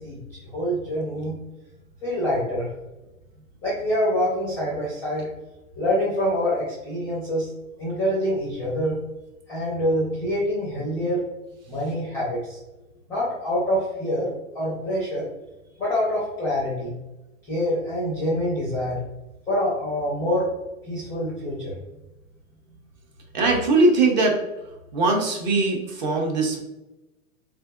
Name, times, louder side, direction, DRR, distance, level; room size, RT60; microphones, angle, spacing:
voice 1, 0.0-1.4 2.0-2.7 3.6-5.3 5.8-7.5 7.8-9.0 9.5-11.3 11.7-12.6 13.1-14.3 14.5-15.3 15.8-16.9 17.5-19.0 19.5-20.5 20.8-21.7, equal, 5° left, -7 dB, 0.4 m, -25 dB
voice 2, 23.3-24.4 24.9-26.6, right 3 dB, 35° right, 1 dB, 0.6 m, -20 dB
3.5 x 3.3 x 2.3 m, 1.0 s
hypercardioid pair, 155°, 42 cm